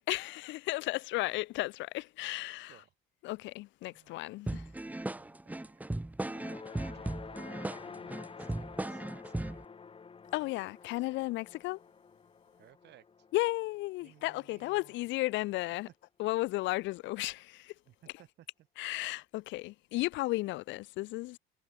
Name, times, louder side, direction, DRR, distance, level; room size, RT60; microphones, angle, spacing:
voice 1, 0.1-2.7 3.2-4.6 10.3-11.8 13.3-15.9 16.2-17.7 18.8-21.4, left 19 dB, 75° left, 1.0 m, -34 dB
voice 2, 3.9-9.7 10.5-10.9 12.6-13.0 14.0-15.0 17.9-18.7 19.1-19.2, right 13 dB, 65° right, 5.4 m, -61 dB
sound 1, 4.5-9.6, right 1 dB, 10° right, 1.7 m, -37 dB
sound 2, 6.2-14.6, left 5 dB, 30° left, 2.4 m, -50 dB
cardioid pair, 100°, 19 cm